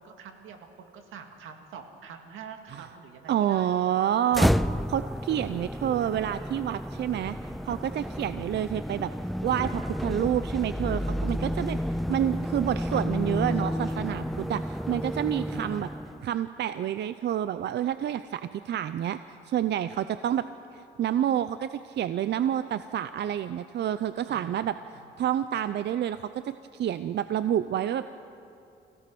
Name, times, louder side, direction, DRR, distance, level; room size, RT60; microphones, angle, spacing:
voice 1, 0.0-4.2 15.7-16.3 24.3-25.1, right 6 dB, 85° right, 5 dB, 2.2 m, -47 dB
voice 2, 3.3-4.6 4.9-7.4 7.6-9.1 9.4-15.9 16.2-20.5 20.7-24.7 25.2-28.1, right 10 dB, 60° right, 12 dB, 0.6 m, -28 dB
sound 1, 4.3-16.3, equal, ahead, 0.4 m, -31 dB
28.5 x 16.5 x 6.1 m, 2.7 s
cardioid pair, 90°, 20 cm